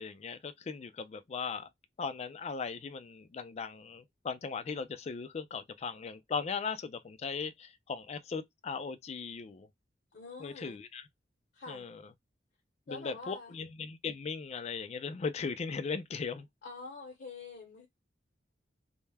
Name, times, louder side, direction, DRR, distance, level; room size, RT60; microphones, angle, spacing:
voice 1, 0.0-1.7 2.0-9.7 10.4-11.1 11.7-12.0 12.9-16.5, left 5 dB, 35° left, 0.3 m, -38 dB
voice 2, 10.1-10.8 11.5-11.9 12.9-13.5 16.6-17.9, left 3 dB, 60° left, 0.8 m, -46 dB
2.2 x 2.1 x 3.2 m
head